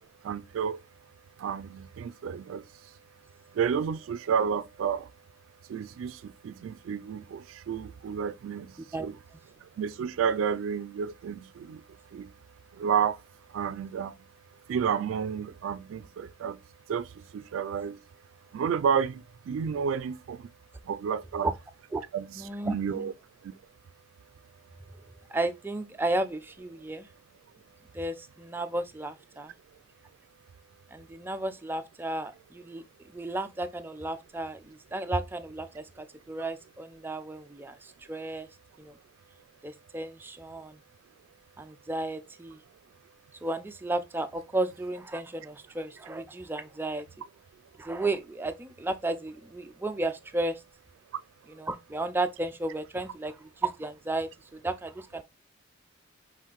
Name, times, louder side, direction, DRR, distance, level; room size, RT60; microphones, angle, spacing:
voice 1, 0.2-0.8 1.4-2.6 3.5-5.1 5.7-8.8 9.0-9.1 9.6-11.8 12.1-12.3 12.8-13.2 13.5-14.1 14.7-16.6 16.9-17.1 17.3-18.0 18.5-20.5 20.9-21.5 22.1-22.3 22.6-23.1 23.4-23.5, right 7 dB, 90° right, 0.3 m, -31 dB
voice 2, 22.4-23.1 25.3-27.1 27.9-29.5 30.9-38.5 38.8-39.0 39.6-40.8 41.6-42.6 43.4-47.1 47.8-50.6 51.5-55.2, right 2 dB, 10° right, 0.3 m, -33 dB
5.6 x 2.5 x 2.9 m
head